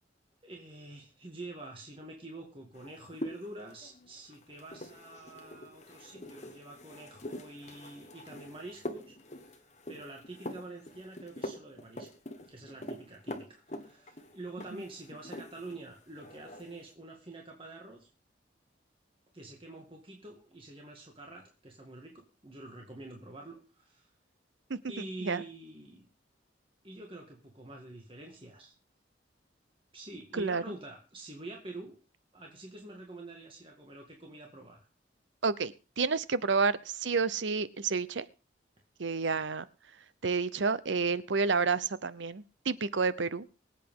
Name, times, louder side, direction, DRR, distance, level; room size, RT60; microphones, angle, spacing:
voice 1, 0.4-9.6 9.9-12.1 12.5-18.1 19.3-24.1 24.9-26.1 26.8-28.7 29.9-32.0 32.3-34.9, right 2 dB, 30° right, 1 dB, 2.0 m, -47 dB
sound 1, 2.7-15.8 16.1-16.8, left 1 dB, 40° left, 1.4 m, -44 dB
voice 2, 35.4-38.3 39.0-39.6 40.2-43.4, right 4 dB, 80° right, 16 dB, 0.8 m, -30 dB
23.5 x 8.4 x 3.7 m, 0.34 s
head